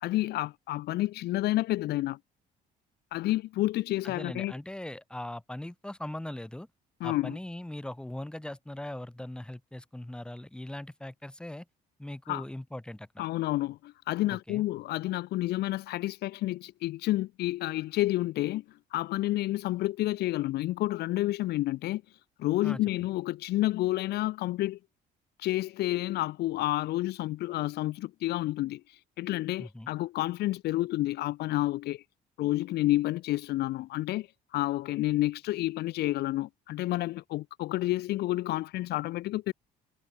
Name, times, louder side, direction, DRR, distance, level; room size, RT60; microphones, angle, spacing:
voice 1, 0.0-2.2 3.1-4.5 7.0-7.4 12.3-12.4 13.2-18.6 18.9-22.0 22.4-24.8 25.4-28.8 29.2-32.0 32.4-34.3 34.5-39.5, left 16 dB, 75° left, 1.0 m, -30 dB
voice 2, 4.0-6.7 7.0-11.7 12.0-13.3 14.3-14.6 22.6-22.8 29.6-29.9, left 1 dB, 5° left, 2.0 m, -40 dB
cardioid pair, 110°, 17 cm